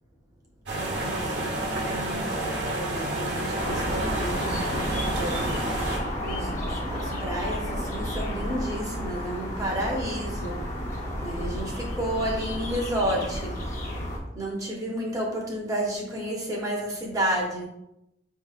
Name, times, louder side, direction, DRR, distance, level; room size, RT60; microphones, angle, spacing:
voice 1, 0.7-1.5 1.8-5.5 6.2-6.5 6.9-10.6 11.2-13.5 14.4-17.7, equal, 20° right, -1 dB, 0.7 m, -31 dB
sound 1, 0.7-6.0, right 1 dB, 85° right, 0.9 m, -29 dB
sound 2, 3.6-14.2, equal, 40° left, 0.7 m, -31 dB
5.1 x 2.9 x 2.4 m, 0.85 s
head